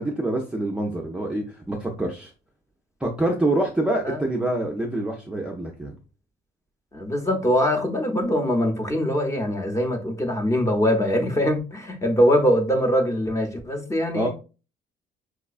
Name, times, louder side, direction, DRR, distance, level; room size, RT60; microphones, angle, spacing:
voice 1, 0.0-2.3 3.0-5.9 14.1-14.3, right 1 dB, 5° right, 0.5 m, -26 dB
voice 2, 6.9-14.3, equal, 15° left, 0.8 m, -22 dB
4.8 x 2.1 x 2.4 m
cardioid pair, 110°, 17 cm